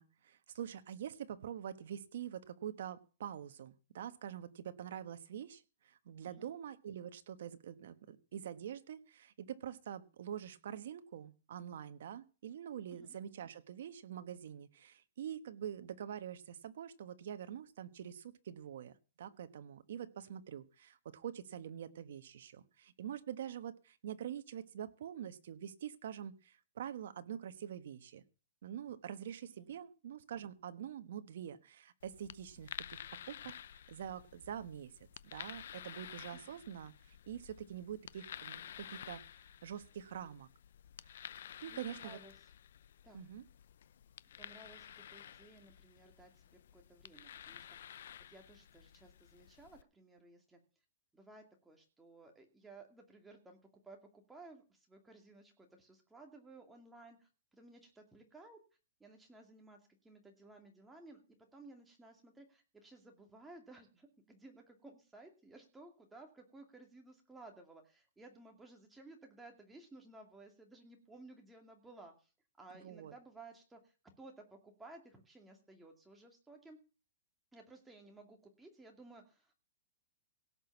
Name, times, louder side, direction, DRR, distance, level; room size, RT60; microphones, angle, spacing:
voice 1, 0.0-28.2 28.6-34.9 35.2-39.2 39.6-40.5 41.6-42.2 43.1-43.4 72.8-73.1, right 9 dB, 65° right, 10 dB, 1.3 m, -45 dB
voice 2, 29.4-29.8 36.3-36.7 41.4-42.3 43.0-43.2 44.4-50.6 51.1-53.6 53.8-58.6 59.0-61.2 61.5-72.3 72.6-76.8 77.5-79.5, right 2 dB, 5° right, 2 dB, 2.3 m, -57 dB
sound 1, 32.0-49.8, left 10 dB, 65° left, 0.6 m, -52 dB
17.0 x 6.3 x 7.2 m, 0.35 s
hypercardioid pair, 160°, 0 cm